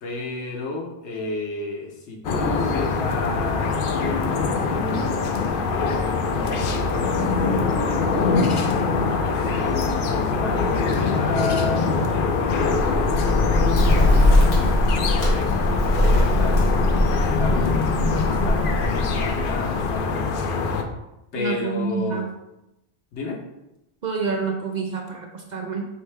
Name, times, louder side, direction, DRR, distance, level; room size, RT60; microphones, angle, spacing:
voice 1, 0.0-3.8 4.5-6.2 9.2-11.8 14.8-15.6 16.0-20.3 21.3-22.3 23.1-23.4, left 3 dB, 85° left, 1 dB, 1.2 m, -33 dB
sound 1, 2.2-20.8, left 4 dB, 60° left, 0.6 m, -23 dB
Bird, 12.5-20.2, left 1 dB, 35° left, 1.0 m, -21 dB
voice 2, 21.3-22.3 24.0-25.9, right 4 dB, 55° right, 2 dB, 0.5 m, -28 dB
4.8 x 3.2 x 3.4 m, 0.91 s
omnidirectional pair, 1.1 m